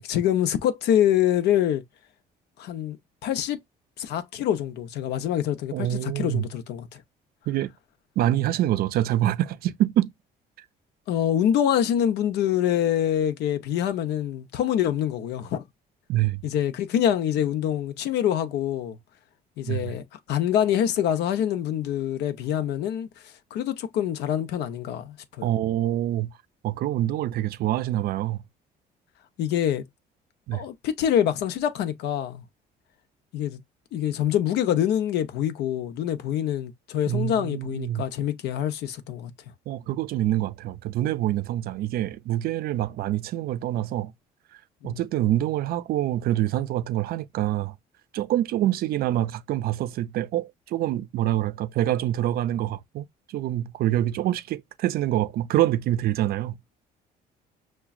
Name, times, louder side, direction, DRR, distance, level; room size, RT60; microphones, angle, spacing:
voice 1, 0.0-1.8 2.6-3.0 3.2-3.6 4.0-7.0 11.1-15.6 16.4-19.0 19.6-23.1 23.5-25.5 29.4-29.8 30.5-32.4 33.3-33.6 33.9-39.3 44.8-45.0, left 10 dB, 80° left, 0.6 m, -25 dB
voice 2, 5.7-6.5 7.5-7.7 8.2-10.1 16.1-16.4 19.7-19.9 25.4-26.3 26.6-28.4 30.5-30.6 37.1-38.1 39.7-44.1 44.8-47.7 48.1-56.5, right 13 dB, 65° right, 0.4 m, -26 dB
5.8 x 2.2 x 2.3 m
cardioid pair, 110°, 17 cm